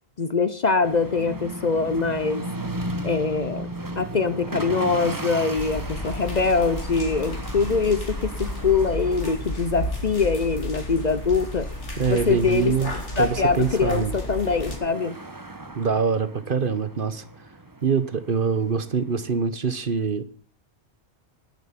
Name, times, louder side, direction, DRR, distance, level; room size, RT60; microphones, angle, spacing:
voice 1, 0.2-2.4 3.0-3.7 4.0-11.7 12.1-12.7 13.2-15.1, left 4 dB, 40° left, 0.8 m, -23 dB
sound 1, 0.8-19.4, right 1 dB, 20° right, 1.2 m, -37 dB
sound 2, 5.6-14.8, left 1 dB, 90° left, 3.1 m, -33 dB
voice 2, 12.0-14.1 15.7-17.2 17.8-20.2, right 5 dB, 50° right, 1.2 m, -24 dB
12.5 x 10.5 x 5.9 m
omnidirectional pair, 1.2 m